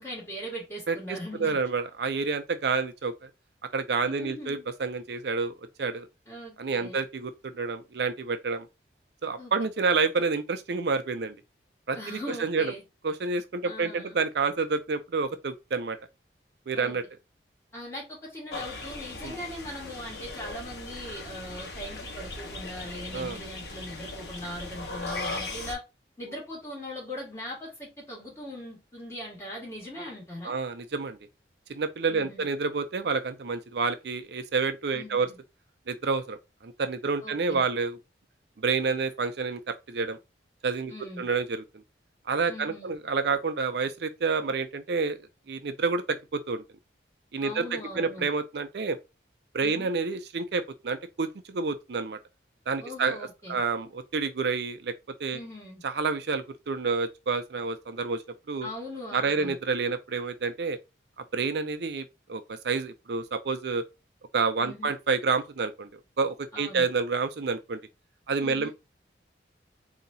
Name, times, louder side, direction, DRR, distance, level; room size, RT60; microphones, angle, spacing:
voice 1, 0.0-1.6 4.0-4.7 6.3-7.0 9.4-9.5 11.9-12.8 13.6-14.2 16.7-17.0 17.7-25.8 26.2-30.5 32.1-32.5 34.9-35.4 37.2-37.6 40.9-41.3 42.5-42.9 47.4-48.3 49.6-49.9 52.8-53.6 55.3-55.8 58.6-59.6 64.6-64.9 66.5-66.9 68.4-68.7, left 1 dB, 15° left, 2.4 m, -40 dB
voice 2, 0.9-3.3 3.7-5.5 5.8-6.1 6.6-8.7 9.2-11.3 11.9-12.7 13.0-16.0 16.7-17.0 19.2-19.4 23.1-23.4 30.4-31.2 31.7-35.3 35.9-38.0 38.6-40.2 40.6-41.6 42.3-45.2 45.5-46.6 47.3-49.0 49.5-52.2 52.7-54.9 55.2-55.4 55.8-58.2 58.5-58.7 59.1-60.8 61.2-62.0 62.3-63.8 64.3-65.9 66.2-67.8 68.3-68.7, right 4 dB, 65° right, 0.5 m, -29 dB
sound 1, 18.5-25.7, left 2 dB, 60° left, 1.3 m, -38 dB
4.0 x 2.8 x 4.0 m
head